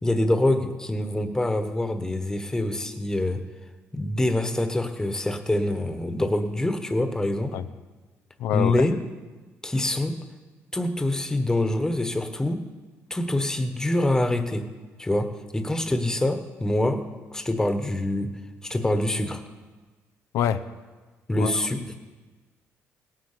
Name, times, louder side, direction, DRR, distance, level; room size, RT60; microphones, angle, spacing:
voice 1, 0.0-3.4 3.9-7.6 8.5-8.9 9.6-10.2 10.7-12.6 13.1-14.7 15.0-17.0 17.3-18.3 18.6-19.4 21.3-21.9, left 1 dB, 10° left, 7 dB, 1.3 m, -25 dB
voice 2, 8.4-8.9 20.3-20.6 21.4-21.5, left 10 dB, 85° left, 11 dB, 0.7 m, -25 dB
17.5 x 9.8 x 6.8 m, 1.3 s
cardioid pair, 105°, 5 cm